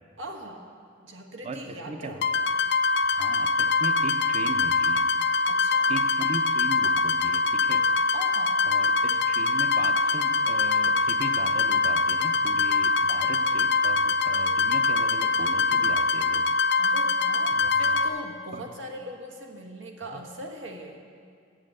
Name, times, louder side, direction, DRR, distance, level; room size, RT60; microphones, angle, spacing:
voice 1, 0.2-0.7 1.0-2.3 5.5-5.9 8.1-8.6 16.8-21.0, equal, 85° right, 1 dB, 1.3 m, -40 dB
voice 2, 1.4-2.1 3.0-5.1 5.9-7.8 8.7-16.5 17.6-18.0 18.5-18.6 20.0-20.2, right 2 dB, 35° right, 7 dB, 0.6 m, -38 dB
sound 1, 2.2-18.1, left 3 dB, 65° left, 0.4 m, -23 dB
8.8 x 7.3 x 7.6 m, 2.2 s
head